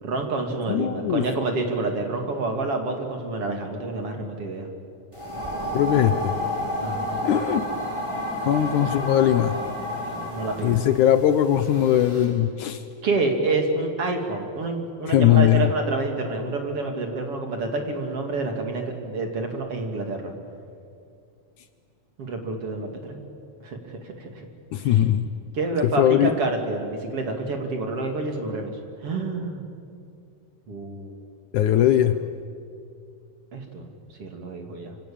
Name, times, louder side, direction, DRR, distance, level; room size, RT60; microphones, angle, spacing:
voice 1, 0.0-4.7 6.8-7.3 10.1-10.8 13.0-20.3 22.2-23.2 23.6-24.5 24.8-25.1 25.5-28.8 29.0-29.6 30.7-31.1 33.5-33.9 34.2-34.9, right 3 dB, 45° right, 4 dB, 3.3 m, -28 dB
voice 2, 0.7-1.3 5.7-6.3 7.2-7.7 8.4-9.5 10.6-12.8 15.1-15.7 24.7-25.2 25.8-26.3 31.5-32.2, left 11 dB, 70° left, 10 dB, 2.1 m, -20 dB
sound 1, 5.1-12.2, left 1 dB, 10° right, 6.7 m, -31 dB
26.0 x 26.0 x 8.7 m, 2.4 s
omnidirectional pair, 4.0 m